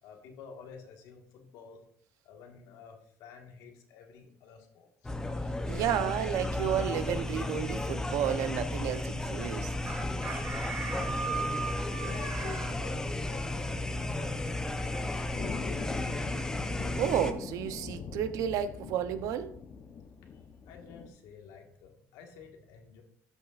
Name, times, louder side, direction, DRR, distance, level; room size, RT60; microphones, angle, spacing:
voice 1, 0.0-1.8 2.2-5.1 10.6-15.7 20.2-23.0, left 5 dB, 80° left, 1.6 m, -50 dB
sound 1, 5.0-17.3, left 2 dB, 10° left, 0.7 m, -34 dB
voice 2, 5.7-9.7 16.9-19.5, right 9 dB, 70° right, 0.7 m, -32 dB
Chicken rooster, 9.9-12.7, right 5 dB, 35° right, 2.2 m, -37 dB
sound 2, 13.5-21.1, left 5 dB, 40° left, 0.8 m, -43 dB
13.0 x 6.3 x 2.5 m
cardioid pair, 115°, 6 cm